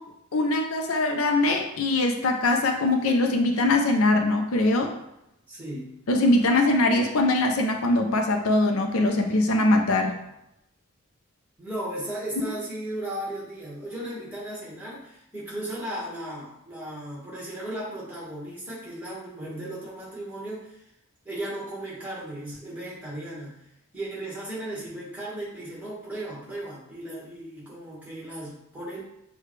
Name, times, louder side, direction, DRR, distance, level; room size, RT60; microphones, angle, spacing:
voice 1, 0.3-4.9 6.1-10.1, left 2 dB, 75° left, 4 dB, 0.5 m, -22 dB
voice 2, 5.5-5.9 11.6-20.8 21.2-23.6 23.9-29.0, right 1 dB, 10° right, -7 dB, 1.4 m, -36 dB
6.6 x 2.3 x 3.1 m, 0.83 s
head